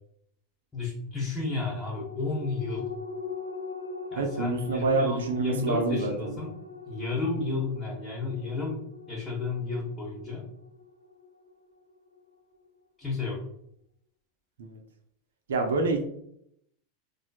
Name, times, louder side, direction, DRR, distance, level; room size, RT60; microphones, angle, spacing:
voice 1, 0.7-2.9 4.1-6.5 6.9-10.4 13.0-13.4, left 3 dB, 10° left, -8 dB, 1.2 m, -32 dB
sound 1, 1.4-12.2 12.6-12.7, left 4 dB, 85° left, 0.4 m, -41 dB
voice 2, 4.2-6.3 14.6-14.8 15.5-16.0, right 3 dB, 65° right, 3 dB, 0.6 m, -27 dB
4.2 x 2.6 x 2.3 m, 0.71 s
figure-of-eight pair, 85°, 0 cm